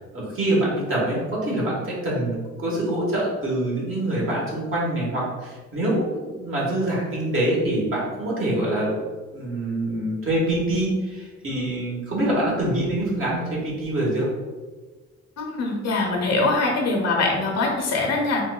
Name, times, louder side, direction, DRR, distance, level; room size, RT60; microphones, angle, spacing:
voice 1, 0.1-9.0 9.3-14.3, right 1 dB, 45° right, -5 dB, 1.4 m, -25 dB
voice 2, 15.4-18.4, left 3 dB, 60° left, 0 dB, 0.9 m, -23 dB
4.1 x 2.5 x 2.2 m, 1.3 s
cardioid pair, 90°, 30 cm